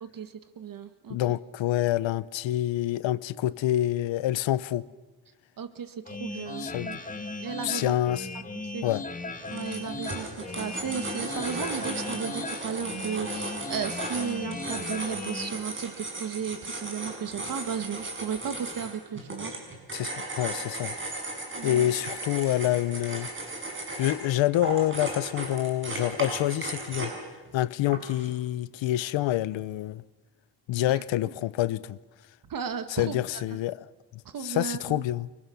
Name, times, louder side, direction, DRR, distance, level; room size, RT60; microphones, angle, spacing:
voice 1, 0.0-1.2 5.6-8.0 8.7-8.9 9.5-19.5 21.5-21.9 30.8-31.0 32.5-33.4 34.2-35.0, right 7 dB, 45° right, 1.6 m, -35 dB
voice 2, 1.1-4.9 6.6-6.9 7.6-8.3 8.8-9.0 19.9-20.9 21.6-23.3 24.0-27.1 27.5-30.0 30.7-32.0 32.9-33.8 34.4-35.3, left 14 dB, 80° left, 1.0 m, -27 dB
sound 1, 6.1-15.5, left 3 dB, 15° left, 1.7 m, -37 dB
sound 2, 9.3-27.3 27.9-28.3, right 2 dB, 25° right, 6.9 m, -36 dB
29.5 x 24.5 x 7.1 m
cardioid pair, 150°, 45 cm